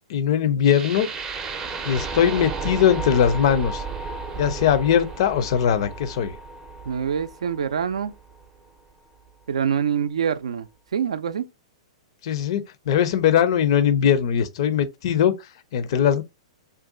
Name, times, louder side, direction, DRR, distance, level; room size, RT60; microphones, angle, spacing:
voice 1, 0.1-1.1 1.8-3.8 4.4-6.4 12.2-15.3 15.7-16.2, left 8 dB, 55° left, 0.5 m, -20 dB
sound 1, 0.6-8.7, right 4 dB, 20° right, 0.5 m, -33 dB
voice 2, 6.9-8.1 9.5-11.5, right 7 dB, 70° right, 0.4 m, -25 dB
2.6 x 2.2 x 3.7 m
hypercardioid pair, 115°, 3 cm